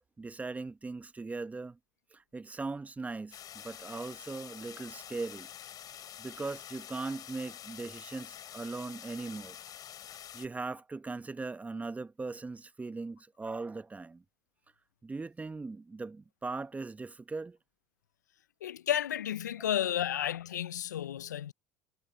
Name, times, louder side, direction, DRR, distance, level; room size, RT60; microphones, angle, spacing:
voice 1, 0.2-1.8 2.1-5.5 6.2-9.5 10.1-14.2 15.0-17.6 19.6-19.7, right 3 dB, 15° right, 1.0 m, -39 dB
sound 1, 3.3-10.5, left 10 dB, 45° left, 3.3 m, -47 dB
voice 2, 18.6-21.5, left 11 dB, 90° left, 0.5 m, -32 dB
hypercardioid pair, 80°, 9 cm